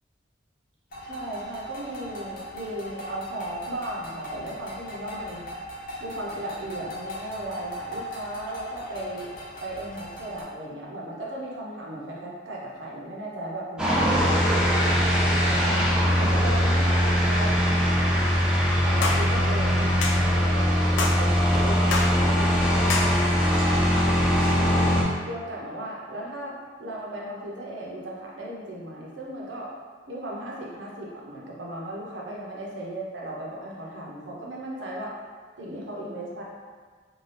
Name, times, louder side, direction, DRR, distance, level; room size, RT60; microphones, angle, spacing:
sound 1, 0.9-10.4, equal, 55° left, 0.7 m, -38 dB
voice 1, 1.0-5.5 6.0-9.3 9.6-15.9 16.2-18.3 18.9-24.9 25.3-26.5 26.8-29.7 30.1-35.1 35.6-36.4, right 1 dB, 85° right, -4 dB, 0.7 m, -36 dB
sound 2, 13.8-25.0, equal, 5° right, 0.4 m, -21 dB
sound 3, 19.0-19.2 20.0-20.2 21.0-21.2 21.9-22.1 22.9-23.1, left 3 dB, 80° left, 0.4 m, -26 dB
2.7 x 2.3 x 3.3 m, 1.5 s
head